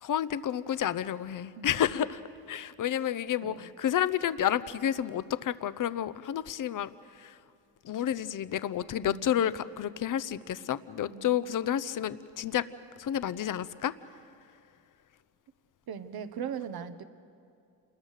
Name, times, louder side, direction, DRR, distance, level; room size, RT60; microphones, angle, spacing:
voice 1, 0.0-2.2 2.5-6.9 7.2-7.4 7.8-12.7 13.0-13.9, left 10 dB, 55° left, 15 dB, 0.8 m, -30 dB
voice 2, 1.5-2.0 3.4-3.7 9.0-9.6 11.1-11.4 15.9-17.0, right 7 dB, 70° right, 10 dB, 1.3 m, -40 dB
28.0 x 21.0 x 6.6 m, 2.5 s
cardioid pair, 85°, 38 cm